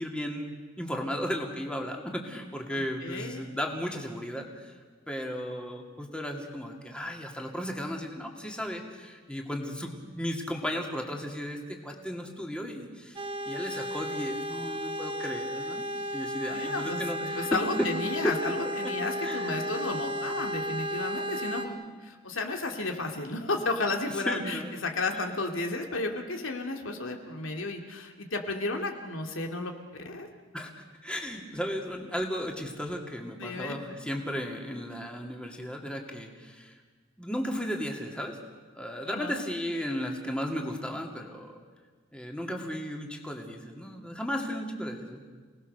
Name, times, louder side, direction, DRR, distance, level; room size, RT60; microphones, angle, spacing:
voice 1, 0.0-4.7 5.1-15.9 16.1-17.9 18.2-18.5 18.8-18.9 19.2-19.6 24.3-24.7 25.1-25.2 30.5-36.7 37.2-38.4 38.8-41.5 42.1-45.2, equal, 5° left, 1 dB, 2.4 m, -35 dB
voice 2, 2.7-3.5 16.5-21.8 22.0-29.7 30.0-30.3 33.4-33.8 39.1-39.4, left 3 dB, 80° left, 3 dB, 2.4 m, -33 dB
sound 1, 13.2-21.7, equal, 25° right, 1.7 m, -34 dB
29.0 x 19.0 x 6.7 m, 1.4 s
head